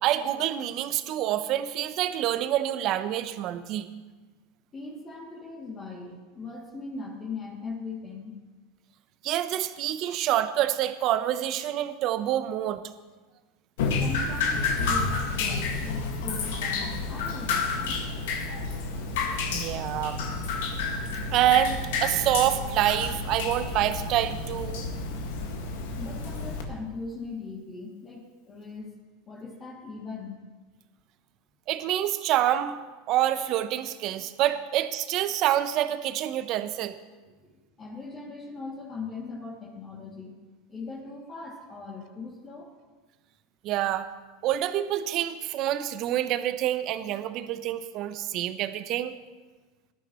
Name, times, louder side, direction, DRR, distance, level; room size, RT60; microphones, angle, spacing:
voice 1, 0.0-3.9 9.2-12.8 19.5-20.2 21.3-24.8 31.7-32.8 33.1-37.0 43.6-44.1 44.4-49.1, right 12 dB, 50° right, 11 dB, 0.9 m, -27 dB
voice 2, 4.7-8.4 14.0-18.1 26.0-28.9 29.3-30.4 37.4-40.4 40.7-42.7, left 4 dB, 30° left, -4 dB, 2.6 m, -40 dB
Drip, 13.8-26.6, left 4 dB, 75° left, 1.9 m, -30 dB
19.0 x 12.0 x 3.1 m, 1.2 s
supercardioid pair, 110°, 0 cm